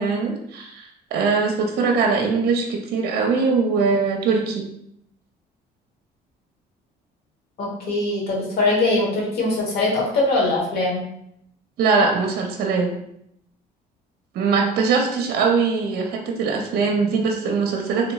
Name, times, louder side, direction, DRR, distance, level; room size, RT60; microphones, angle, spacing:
voice 1, 0.0-4.7 11.8-12.9 14.3-18.1, right 4 dB, 65° right, 2 dB, 0.6 m, -21 dB
voice 2, 7.6-11.0, left 2 dB, 70° left, -2 dB, 1.2 m, -22 dB
3.3 x 2.9 x 2.3 m, 0.75 s
cardioid pair, 110°, 17 cm